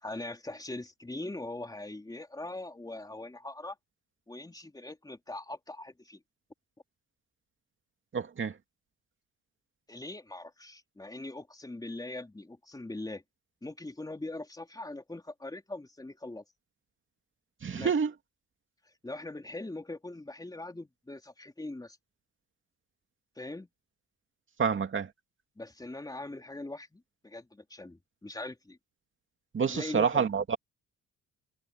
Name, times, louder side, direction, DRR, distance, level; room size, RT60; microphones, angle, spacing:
voice 1, 0.0-3.8 4.3-6.2 9.9-13.2 13.6-16.4 17.7-17.9 19.0-22.0 23.4-23.7 25.6-28.8 29.7-30.3, left 2 dB, 10° left, 3.5 m, -41 dB
voice 2, 8.1-8.5 17.6-18.1 24.6-25.1 29.5-30.6, right 6 dB, 40° right, 2.6 m, -28 dB
cardioid pair, 90°, 30 cm